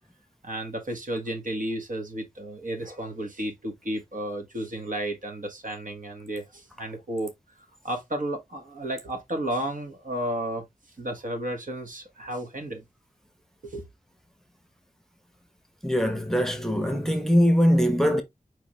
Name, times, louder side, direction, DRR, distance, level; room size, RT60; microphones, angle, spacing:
voice 1, 0.4-7.3 7.8-10.7 11.0-12.8 13.6-13.9, right 1 dB, 65° right, 1.5 m, -32 dB
voice 2, 15.8-18.2, equal, 5° left, 0.8 m, -22 dB
4.7 x 3.4 x 3.1 m
wide cardioid pair, 70°, 15 cm